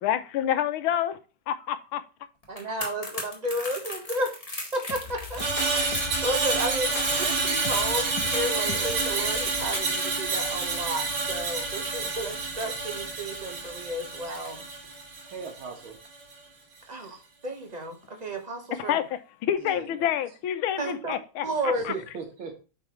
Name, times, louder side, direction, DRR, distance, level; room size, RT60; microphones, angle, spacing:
voice 1, 0.0-1.2 1.5-2.0 18.8-21.9, left 10 dB, 85° left, 1.6 m, -28 dB
sound 1, 2.4-15.6 15.9-16.1, left 2 dB, 20° left, 1.6 m, -42 dB
voice 2, 2.5-4.3 4.7-14.6 16.9-17.1 17.4-19.0 20.8-21.2 21.4-21.8, right 1 dB, 25° right, 1.2 m, -32 dB
sound 2, 4.9-10.0, left 8 dB, 65° left, 1.2 m, -40 dB
Screech, 5.4-15.7 16.0-16.3, right 3 dB, 60° right, 2.2 m, -29 dB
voice 3, 15.2-16.0 16.9-17.2 19.6-20.0 21.7-22.5, right 5 dB, 80° right, 2.6 m, -39 dB
8.3 x 5.3 x 3.1 m
omnidirectional pair, 2.2 m